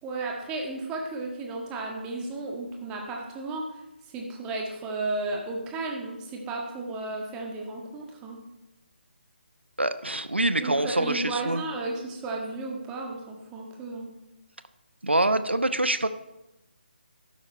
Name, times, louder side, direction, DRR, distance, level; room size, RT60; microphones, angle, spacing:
voice 1, 0.0-3.8 4.1-8.4 10.5-14.1, right 2 dB, 10° right, 0 dB, 1.6 m, -34 dB
voice 2, 9.8-11.6 15.0-16.1, right 1 dB, 80° right, 12 dB, 0.8 m, -25 dB
12.5 x 9.5 x 4.3 m, 0.98 s
figure-of-eight pair, 145°, 6 cm